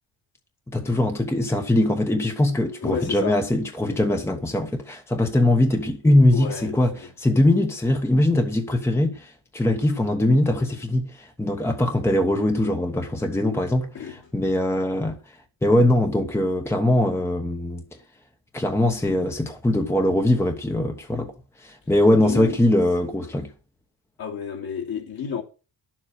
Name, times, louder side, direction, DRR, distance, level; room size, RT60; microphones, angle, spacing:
voice 1, 0.7-15.2 15.6-17.8 18.5-21.3 21.6-23.5, left 1 dB, 5° left, 1.0 m, -21 dB
voice 2, 2.8-3.4 6.3-7.1 13.9-14.3 22.3-22.6 24.2-25.4, left 7 dB, 55° left, 3.0 m, -31 dB
11.5 x 7.5 x 6.4 m
cardioid pair, 165°, 44 cm